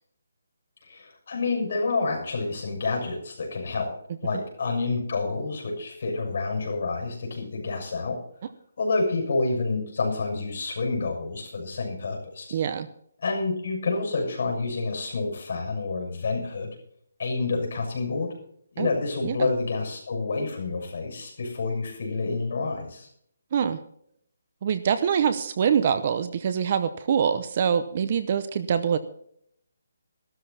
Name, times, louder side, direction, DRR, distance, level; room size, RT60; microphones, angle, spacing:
voice 1, 0.8-8.2 8.8-12.6 13.2-16.7 17.2-18.3 18.7-23.1, left 3 dB, 45° left, 2 dB, 6.8 m, -28 dB
voice 2, 12.5-12.9 18.8-18.9 19.2-19.5 23.5-23.8 24.6-29.0, right 7 dB, 30° right, 12 dB, 0.8 m, -24 dB
15.0 x 13.0 x 4.2 m, 0.67 s
hypercardioid pair, 175°, 0 cm